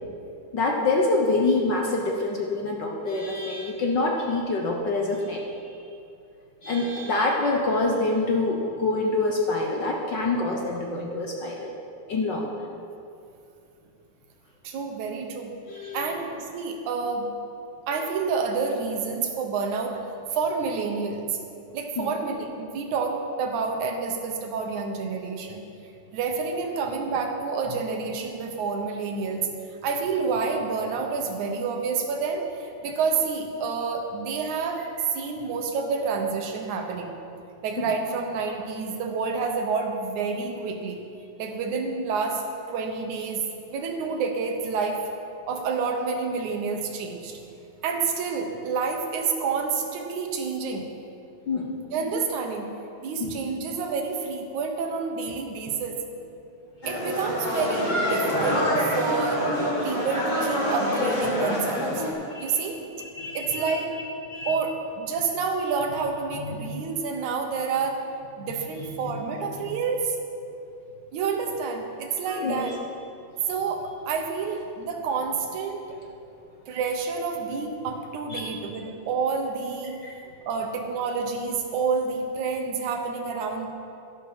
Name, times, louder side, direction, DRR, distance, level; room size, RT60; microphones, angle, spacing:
voice 1, 0.5-5.4 6.6-11.7 12.1-12.7 15.7-16.1 22.0-22.1 37.8-37.9 51.5-51.8 53.2-53.3 62.3-63.8 64.3-64.5 66.4-66.7 69.0-69.1 72.3-72.7 78.3-78.6 79.9-80.2, left 2 dB, 65° left, 0 dB, 1.1 m, -26 dB
voice 2, 14.6-15.6 15.9-17.4 17.9-20.0 20.3-21.4 21.7-25.7 26.1-29.5 29.8-37.1 37.6-41.0 41.4-45.1 45.4-47.4 47.8-50.9 51.9-56.1 56.9-59.5 59.8-62.0 62.4-62.9 63.3-63.9 64.5-68.1 68.4-70.2 71.1-72.8 73.5-76.0 76.7-80.1 80.5-83.7, right 5 dB, 80° right, 3 dB, 2.6 m, -29 dB
sound 1, 56.8-62.1, equal, 20° left, 1.8 m, -26 dB
11.5 x 11.5 x 6.0 m, 2.6 s
omnidirectional pair, 3.3 m